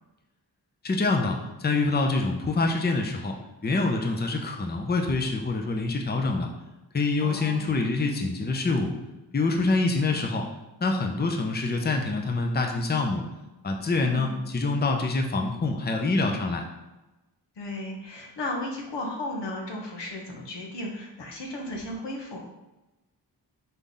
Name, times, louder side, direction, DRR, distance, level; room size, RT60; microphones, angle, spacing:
voice 1, 0.8-3.4 3.6-6.5 6.9-8.9 9.3-10.5 10.8-13.2 13.6-16.6, left 3 dB, 25° left, 2 dB, 0.6 m, -26 dB
voice 2, 7.2-7.8 14.0-14.4 17.6-22.4, left 1 dB, 80° left, 0 dB, 1.0 m, -35 dB
4.0 x 3.4 x 3.8 m, 1.0 s
cardioid pair, 55°, 42 cm